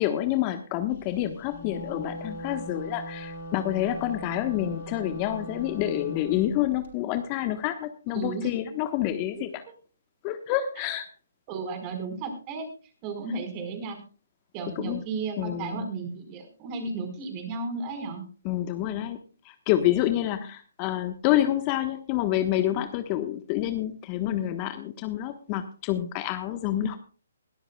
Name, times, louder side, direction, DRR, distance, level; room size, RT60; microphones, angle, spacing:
voice 1, 0.0-9.6 10.2-11.1 14.8-15.0 15.4-15.9 18.4-19.2 19.4-27.0, left 13 dB, 30° left, 9 dB, 1.2 m, -28 dB
Wind instrument woodwind instrument, 1.4-6.5, equal, 50° left, 6.2 m, -39 dB
voice 2, 8.1-8.5 11.5-12.7 13.0-14.0 14.5-18.2, right 4 dB, 30° right, 6 dB, 4.7 m, -34 dB
21.5 x 13.5 x 2.3 m, 0.37 s
figure-of-eight pair, 140°, 0 cm